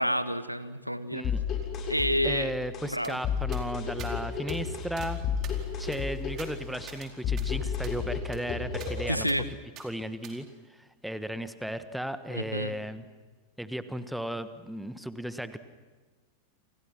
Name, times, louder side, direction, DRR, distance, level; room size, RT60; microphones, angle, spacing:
voice 1, 0.0-1.2 1.9-2.5 2.9-3.2 9.1-9.5 12.3-12.7, equal, 90° right, 14 dB, 1.2 m, -29 dB
voice 2, 1.1-1.4 2.2-5.2 5.8-9.3 9.8-13.0 13.6-15.6, right 1 dB, ahead, 11 dB, 1.4 m, -35 dB
sound 1, 1.2-9.2, left 6 dB, 30° left, 7.6 m, -32 dB
sound 2, 3.0-3.1 3.5-3.6 4.0-4.1 4.5-4.6 5.0-5.1 5.4-7.1 7.4-7.5 7.8-8.0 8.3-8.4 8.8-8.9 9.3-9.4 9.8-9.9 10.2-10.3, right 8 dB, 35° right, 4.4 m, -47 dB
29.5 x 28.5 x 6.1 m, 1.4 s
figure-of-eight pair, 90°, 0 cm